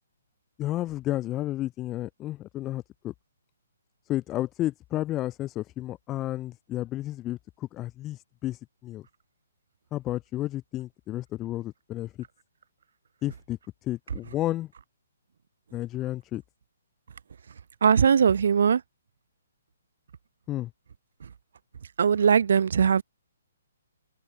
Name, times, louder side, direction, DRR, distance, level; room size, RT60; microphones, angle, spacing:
voice 1, 0.6-3.1 4.1-9.0 9.9-12.1 13.2-14.7 15.7-16.4 20.5-20.7, left 15 dB, 20° left, 3.2 m, -32 dB
voice 2, 17.8-18.8 21.2-21.3 22.0-23.0, right 7 dB, 55° right, 0.5 m, -20 dB
figure-of-eight pair, 130°, 0 cm